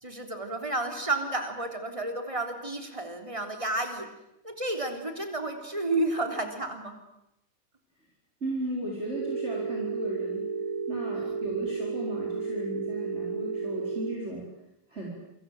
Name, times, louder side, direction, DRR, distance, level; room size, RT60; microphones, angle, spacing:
voice 1, 0.0-4.1 4.4-7.0 11.1-11.3, right 2 dB, 15° right, 5 dB, 3.4 m, -31 dB
voice 2, 8.4-10.4 10.9-14.5 14.9-15.1, right 1 dB, 30° right, -3 dB, 5.3 m, -35 dB
Telephone, 9.1-14.1, right 5 dB, 80° right, 3.8 m, -32 dB
28.5 x 25.0 x 7.8 m, 0.86 s
omnidirectional pair, 2.2 m